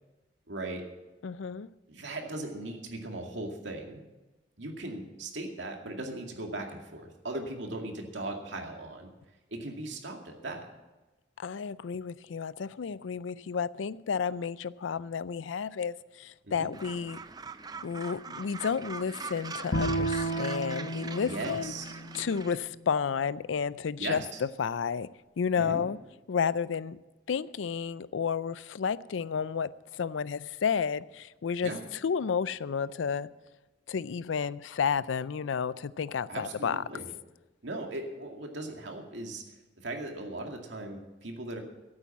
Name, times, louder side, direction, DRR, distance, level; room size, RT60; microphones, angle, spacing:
voice 1, 0.5-0.8 1.9-4.0 4.6-9.1 9.5-10.7 16.4-16.7 21.3-21.8 24.0-24.3 25.5-25.8 31.6-31.8 36.3-37.1 37.6-39.4 39.8-41.6, right 2 dB, 75° right, 2.2 m, -38 dB
voice 2, 1.2-1.7 11.4-17.2 17.8-21.7 22.1-25.1 25.4-26.0 26.3-27.0 27.3-33.3 33.9-36.8, left 6 dB, 85° left, 0.4 m, -31 dB
Gull seagull, 16.7-22.6, right 4 dB, 20° right, 0.5 m, -42 dB
Bowed string instrument, 19.7-23.0, right 1 dB, 65° left, 1.5 m, -33 dB
13.0 x 8.9 x 7.2 m
head